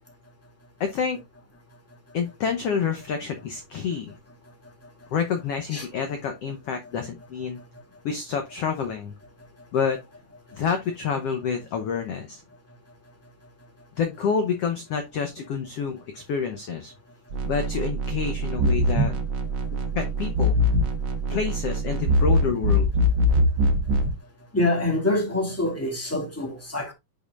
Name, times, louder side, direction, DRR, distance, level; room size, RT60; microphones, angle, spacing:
voice 1, 0.8-1.2 2.1-4.1 5.1-7.6 8.0-9.1 9.7-10.0 10.5-12.4 14.0-16.9 17.4-19.1 19.9-20.6 21.3-22.9, left 6 dB, 80° left, 1.4 m, -28 dB
sound 1, 17.3-24.1, equal, 70° right, 1.0 m, -23 dB
voice 2, 24.5-26.9, left 2 dB, 5° left, 1.5 m, -25 dB
9.6 x 5.3 x 2.5 m
omnidirectional pair, 4.0 m